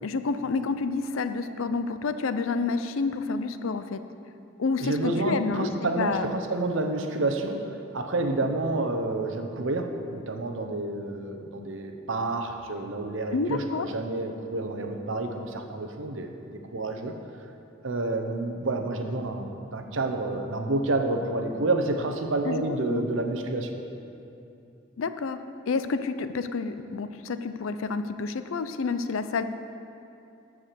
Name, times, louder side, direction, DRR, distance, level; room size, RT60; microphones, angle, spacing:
voice 1, 0.0-4.0 4.6-5.7 6.0-6.3 13.3-13.9 22.4-23.1 25.0-29.4, left 4 dB, 80° left, 10 dB, 0.5 m, -29 dB
voice 2, 4.8-17.1 17.8-23.8, right 2 dB, 70° right, 5 dB, 0.9 m, -29 dB
13.5 x 4.8 x 6.7 m, 2.7 s
head